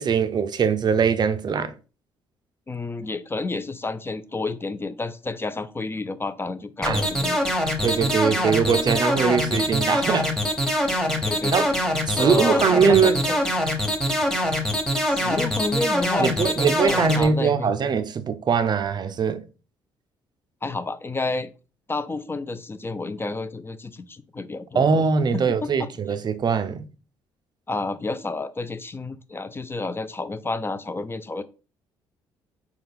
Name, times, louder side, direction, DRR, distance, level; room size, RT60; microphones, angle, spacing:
voice 1, 0.0-1.7 6.9-7.0 7.8-10.3 11.5-11.7 12.1-13.2 16.2-19.4 24.7-26.9, right 6 dB, 40° right, 0.5 m, -22 dB
voice 2, 2.7-7.4 11.2-11.7 12.2-13.4 15.1-17.7 20.6-21.5 21.9-24.9 25.3-25.9 27.7-31.4, left 3 dB, 20° left, 0.4 m, -30 dB
sound 1, 6.8-17.2, equal, 5° left, 1.2 m, -23 dB
4.0 x 2.3 x 3.5 m
hypercardioid pair, 50°, 11 cm